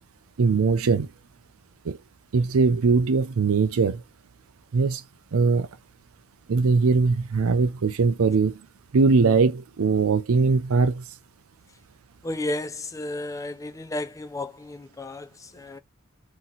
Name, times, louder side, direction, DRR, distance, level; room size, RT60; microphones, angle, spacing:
voice 1, 0.4-1.1 1.8-2.0 2.3-4.0 4.7-5.0 5.3-5.7 6.5-8.6 8.9-11.0, right 4 dB, 70° right, 0.5 m, -21 dB
voice 2, 12.2-15.8, left 2 dB, 15° left, 0.4 m, -33 dB
4.1 x 2.9 x 3.8 m
head